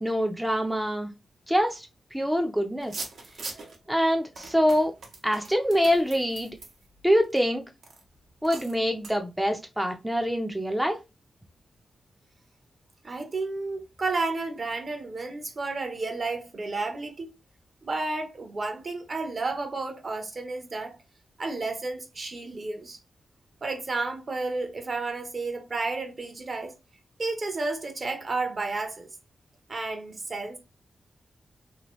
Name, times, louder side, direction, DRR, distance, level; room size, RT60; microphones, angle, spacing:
voice 1, 0.0-1.1 1.5-3.0 3.9-4.9 5.2-6.5 7.0-7.6 8.4-11.0, equal, 5° right, 0.5 m, -25 dB
sound 1, 2.8-3.8 4.4-7.4 7.8-8.0 8.4-8.8 9.0-9.2, right 3 dB, 75° right, 0.9 m, -41 dB
voice 2, 13.0-17.3 17.8-21.0 21.4-23.0 23.6-26.7 27.2-29.1 29.7-30.6, right 3 dB, 45° right, 0.8 m, -32 dB
2.8 x 2.5 x 3.0 m
cardioid pair, 85°, 0 cm